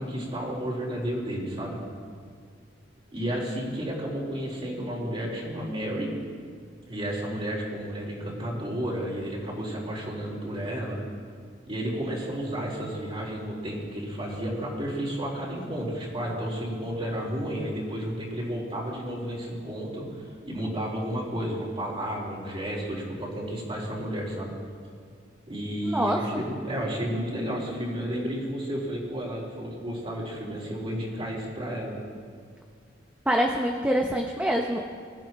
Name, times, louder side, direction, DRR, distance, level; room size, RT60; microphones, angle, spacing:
voice 1, 0.0-1.8 3.1-6.1 6.9-11.0 11.7-24.5 25.5-31.9, equal, 35° right, -5 dB, 4.2 m, -32 dB
voice 2, 25.9-26.2 33.3-34.8, equal, 10° right, 1 dB, 0.7 m, -25 dB
23.0 x 13.5 x 3.1 m, 2.1 s
head